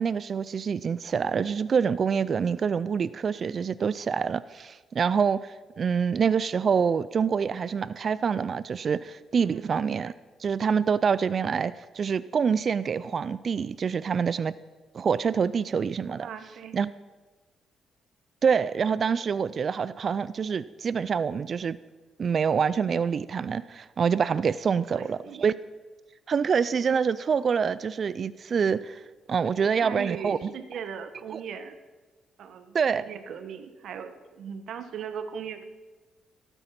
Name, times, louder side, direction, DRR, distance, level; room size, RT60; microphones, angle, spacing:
voice 1, 0.0-10.1 10.4-14.5 14.9-16.3 16.7-16.9 18.4-21.8 22.2-25.5 26.3-29.0 29.3-30.5 31.3-31.4 32.7-33.0, right 6 dB, 45° right, 17 dB, 0.3 m, -26 dB
voice 2, 9.4-9.7 16.2-16.8 24.9-25.4 29.4-31.8 32.4-35.6, right 7 dB, 70° right, 9 dB, 1.2 m, -39 dB
16.0 x 9.0 x 5.9 m, 1.3 s
cardioid pair, 100°, 0 cm